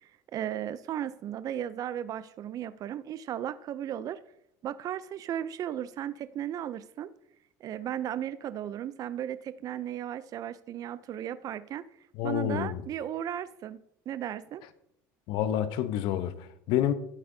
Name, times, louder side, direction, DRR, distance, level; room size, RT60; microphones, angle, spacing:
voice 1, 0.0-4.2 4.6-7.1 7.6-11.8 12.2-13.8 14.1-14.6, right 10 dB, 45° right, 0.4 m, -35 dB
voice 2, 12.2-12.8 15.3-16.9, left 11 dB, 65° left, 0.8 m, -28 dB
12.5 x 8.4 x 2.7 m
supercardioid pair, 100°, 9 cm